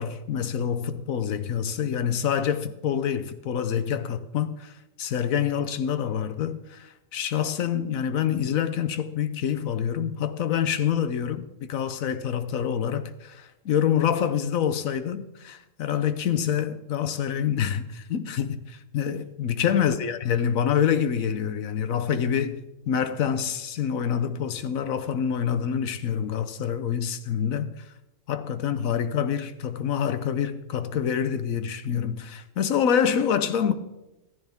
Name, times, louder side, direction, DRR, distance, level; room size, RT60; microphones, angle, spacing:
voice 1, 0.0-27.9 28.3-33.7, left 8 dB, 90° left, 1.3 m, -26 dB
14.0 x 14.0 x 3.6 m
omnidirectional pair, 1.4 m